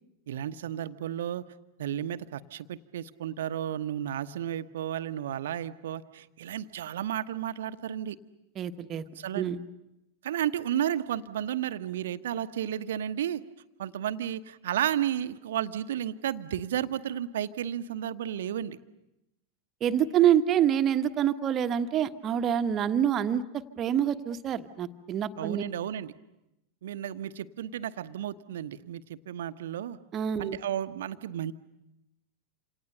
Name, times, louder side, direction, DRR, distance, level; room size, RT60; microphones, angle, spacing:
voice 1, 0.3-1.4 1.8-8.2 9.2-9.5 10.2-13.4 13.8-18.8 25.4-26.1 26.8-30.0 30.4-31.5, right 10 dB, 60° right, 11 dB, 1.1 m, -33 dB
voice 2, 8.6-9.0 9.3-9.6 19.8-25.6 30.1-30.6, right 9 dB, 30° right, 9 dB, 1.3 m, -26 dB
28.0 x 28.0 x 6.8 m, 0.91 s
figure-of-eight pair, 90°, 0 cm